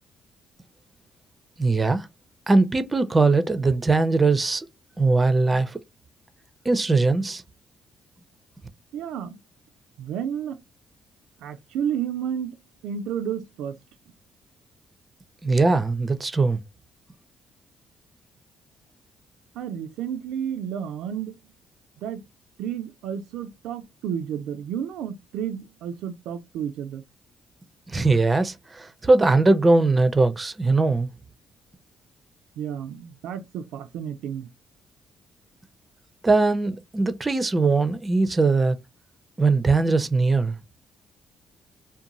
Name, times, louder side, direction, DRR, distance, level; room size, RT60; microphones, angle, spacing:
voice 1, 1.6-2.1 2.5-4.7 5.0-5.8 6.7-7.4 15.4-16.6 27.9-31.1 36.2-38.8 39.4-40.6, right 3 dB, 25° right, 0.4 m, -20 dB
voice 2, 8.9-9.4 10.0-10.6 11.4-12.6 12.8-13.8 19.6-21.4 22.0-22.2 22.6-27.0 32.6-34.5, right 8 dB, 90° right, 0.3 m, -31 dB
2.5 x 2.2 x 2.9 m
cardioid pair, 90°, 0 cm